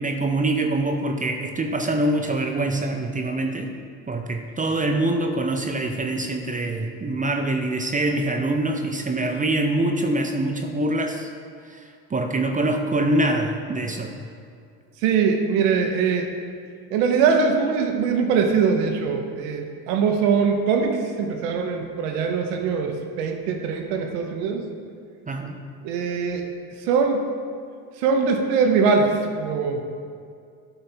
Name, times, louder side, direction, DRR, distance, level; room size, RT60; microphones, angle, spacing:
voice 1, 0.0-3.7 4.1-11.3 11.6-14.2 25.3-25.6, right 2 dB, 20° right, 4 dB, 0.5 m, -24 dB
voice 2, 15.0-16.3 16.9-24.7 25.8-26.5 26.8-27.3 28.0-29.8, right 5 dB, 85° right, 4 dB, 0.9 m, -22 dB
9.0 x 3.8 x 4.4 m, 2.3 s
supercardioid pair, 80°, 42 cm